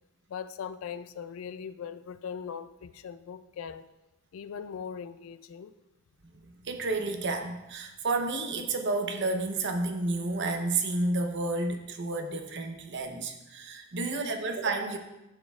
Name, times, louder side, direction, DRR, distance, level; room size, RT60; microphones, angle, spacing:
voice 1, 0.3-3.9 4.3-5.7, left 7 dB, 65° left, 14 dB, 0.3 m, -40 dB
voice 2, 6.4-15.0, right 3 dB, 55° right, 5 dB, 0.7 m, -31 dB
11.5 x 6.4 x 2.3 m, 0.95 s
head